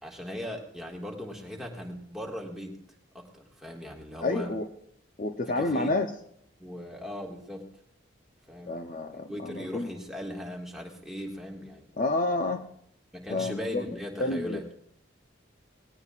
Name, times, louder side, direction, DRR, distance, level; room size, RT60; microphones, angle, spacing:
voice 1, 0.0-2.8 3.1-4.5 5.6-6.0 6.6-7.7 8.5-8.7 9.3-11.9 13.1-14.7, equal, ahead, -1 dB, 1.9 m, -38 dB
voice 2, 4.2-4.7 5.2-6.1 8.7-9.9 12.0-12.6 13.3-13.8 14.2-14.6, left 2 dB, 45° left, 6 dB, 0.7 m, -29 dB
19.5 x 18.0 x 2.5 m, 0.67 s
head